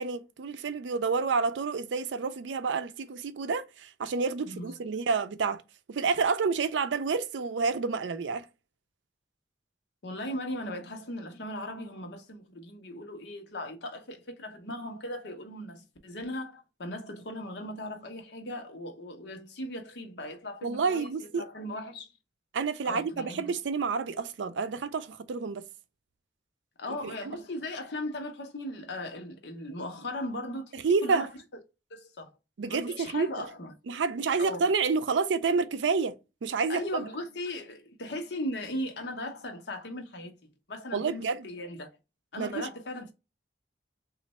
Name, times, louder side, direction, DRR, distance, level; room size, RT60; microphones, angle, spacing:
voice 1, 0.0-5.6 5.9-8.5 20.6-21.5 22.5-25.6 30.7-31.3 32.6-33.3 33.9-36.2 36.4-37.0 40.9-41.5 42.4-42.7, right 4 dB, 90° right, 0.4 m, -29 dB
voice 2, 10.0-22.1 22.8-23.4 26.8-31.3 31.9-32.3 32.7-33.7 34.4-34.6 36.7-41.9 42.3-43.1, left 1 dB, 75° left, 0.9 m, -38 dB
3.1 x 2.4 x 4.1 m
head